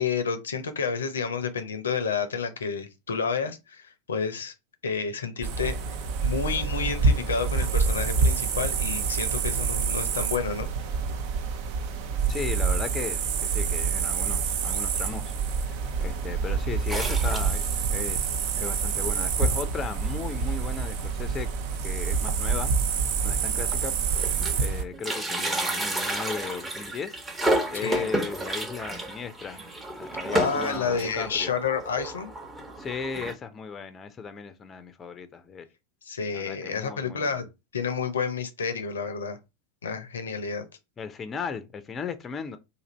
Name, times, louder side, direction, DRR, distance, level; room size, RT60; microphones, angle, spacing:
voice 1, 0.0-4.5 4.8-6.0 6.2-10.7 27.8-28.1 30.3-32.3 36.0-37.4 37.7-39.4 39.8-40.6, left 6 dB, 75° left, 0.6 m, -30 dB
sound 1, 5.4-24.8, right 5 dB, 50° right, 0.6 m, -27 dB
voice 2, 12.3-18.3 18.6-21.5 21.8-23.9 24.6-27.2 27.7-29.6 30.0-31.5 32.8-35.7 36.3-37.4 41.0-42.6, left 5 dB, 25° left, 0.5 m, -36 dB
sound 2, 16.9-18.1 18.6-18.7 18.9-19.0 19.9-20.0 20.4-20.6 20.9-21.0 22.3-22.4 23.0-23.1 23.5-24.7 24.9-33.3, right 1 dB, 15° right, 0.9 m, -31 dB
2.7 x 2.5 x 4.2 m
figure-of-eight pair, 85°, 0 cm